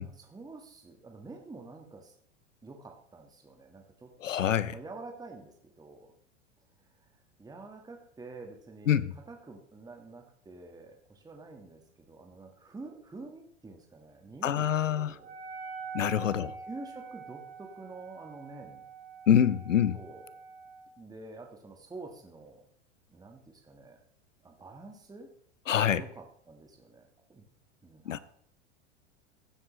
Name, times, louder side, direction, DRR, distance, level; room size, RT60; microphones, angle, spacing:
voice 1, 0.0-2.1 2.6-4.1 4.4-6.1 6.8-15.3 16.3-18.8 19.9-20.3 21.0-22.7 23.1-24.0 24.4-25.3 25.9-27.4 27.8-28.2, right 3 dB, 10° right, 1.4 m, -48 dB
voice 2, 4.2-4.7 8.9-9.1 14.4-15.2 15.9-16.5 19.3-20.0 25.7-26.0 28.1-28.2, left 9 dB, 90° left, 0.6 m, -25 dB
Wind instrument woodwind instrument, 15.2-20.9, right 5 dB, 50° right, 3.6 m, -45 dB
15.0 x 7.6 x 3.1 m
hypercardioid pair, 95°, 37 cm